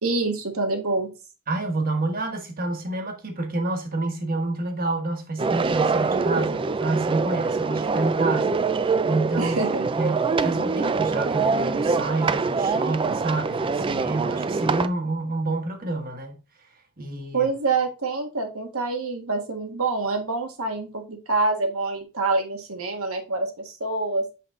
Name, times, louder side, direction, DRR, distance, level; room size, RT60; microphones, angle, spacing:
voice 1, 0.0-1.1 9.4-9.9 17.3-24.3, right 3 dB, 70° right, 1.5 m, -26 dB
voice 2, 1.5-8.6 9.1-9.7 10.0-16.4 17.0-17.5, right 2 dB, 40° right, 1.4 m, -28 dB
sound 1, 5.4-14.9, right 4 dB, 25° right, 0.3 m, -24 dB
5.9 x 5.7 x 3.7 m
head